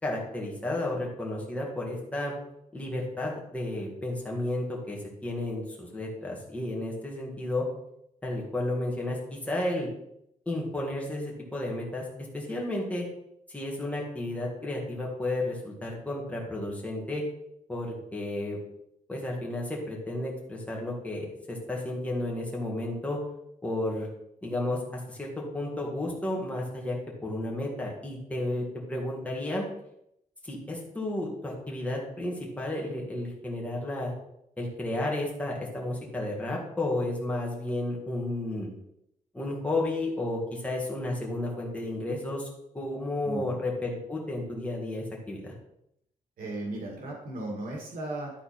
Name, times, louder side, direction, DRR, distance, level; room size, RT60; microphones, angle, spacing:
voice 1, 0.0-2.3 2.7-5.0 5.2-7.7 8.2-9.9 10.5-12.1 12.3-13.1 13.5-17.2 17.7-18.6 19.1-23.2 23.6-24.1 24.4-24.8 25.1-27.0 27.2-29.6 30.4-34.1 34.6-38.7 39.3-42.5 42.7-45.5, left 1 dB, 10° left, -3 dB, 1.9 m, -32 dB
voice 2, 43.2-43.6 46.4-48.3, right 2 dB, 90° right, -1 dB, 2.2 m, -36 dB
11.5 x 4.2 x 4.3 m, 0.76 s
wide cardioid pair, 165°, 14 cm